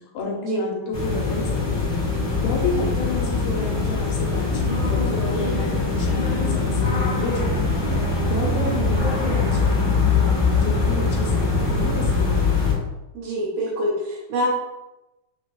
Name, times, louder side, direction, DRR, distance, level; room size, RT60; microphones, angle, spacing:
voice 1, 0.1-2.0 2.4-7.8 8.3-12.6, left 2 dB, 80° left, -2 dB, 2.6 m, -30 dB
sound 1, 0.9-12.7, left 4 dB, 60° left, 1.0 m, -22 dB
voice 2, 13.1-14.5, equal, 75° right, -7 dB, 2.6 m, -25 dB
6.2 x 2.4 x 3.0 m, 0.99 s
omnidirectional pair, 4.5 m